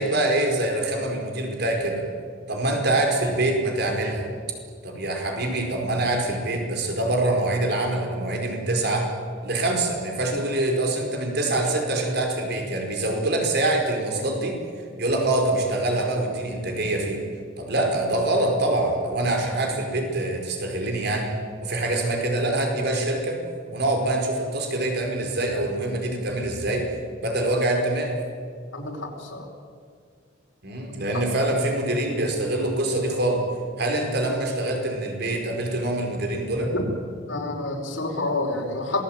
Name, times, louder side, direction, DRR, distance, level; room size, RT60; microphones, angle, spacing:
voice 1, 0.0-2.1 2.5-4.3 4.8-9.1 9.4-14.6 15.0-17.2 17.6-21.3 21.6-23.4 23.7-26.9 27.2-28.2 30.6-33.4 33.8-36.7, right 2 dB, 55° right, 2 dB, 5.0 m, -25 dB
voice 2, 28.7-29.5 30.9-31.2 36.7-36.8 37.3-39.0, left 2 dB, 85° left, 1 dB, 5.2 m, -29 dB
27.0 x 20.0 x 9.2 m, 2.1 s
head